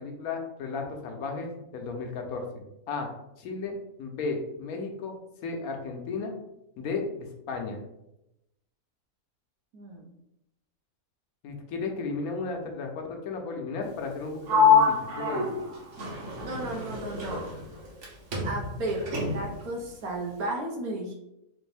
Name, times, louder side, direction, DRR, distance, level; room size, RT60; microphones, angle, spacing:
voice 1, 0.0-3.1 3.4-6.3 6.8-7.8 11.4-15.6, left 4 dB, 80° left, 3 dB, 1.2 m, -34 dB
voice 2, 9.7-10.1 16.4-17.5 18.4-21.1, right 2 dB, 90° right, 0 dB, 1.4 m, -34 dB
Sliding door, 14.5-18.1 18.3-19.6, left 4 dB, 60° right, 1.1 m, -26 dB
3.9 x 2.6 x 3.3 m, 0.86 s
omnidirectional pair, 1.5 m